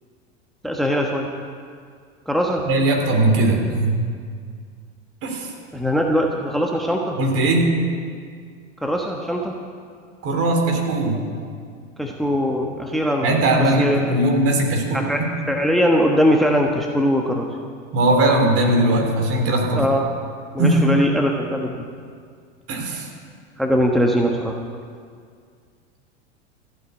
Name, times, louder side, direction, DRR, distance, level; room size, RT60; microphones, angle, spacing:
voice 1, 0.6-1.3 2.3-2.7 5.7-7.2 8.8-9.6 12.0-13.3 13.6-14.1 14.9-15.2 15.5-17.5 19.8-20.0 20.5-21.9 23.6-24.6, equal, ahead, 1 dB, 1.2 m, -21 dB
voice 2, 2.7-4.0 5.2-5.5 7.2-7.7 10.2-11.2 13.2-15.3 17.9-19.9 20.6-20.9 22.7-23.1, right 2 dB, 40° right, 2 dB, 3.5 m, -19 dB
15.0 x 8.3 x 9.8 m, 2.1 s
hypercardioid pair, 90°, 34 cm